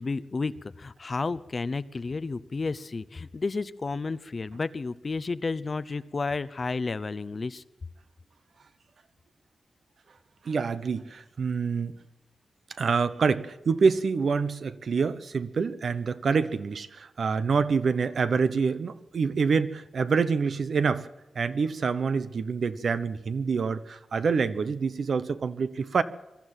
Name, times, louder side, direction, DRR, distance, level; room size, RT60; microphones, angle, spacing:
voice 1, 0.0-7.6, left 3 dB, 35° left, 15 dB, 0.7 m, -32 dB
voice 2, 10.4-11.9 12.8-21.1 21.3-26.0, right 5 dB, 60° right, 13 dB, 1.0 m, -26 dB
22.5 x 13.0 x 9.0 m, 1.0 s
wide cardioid pair, 140°, 0 cm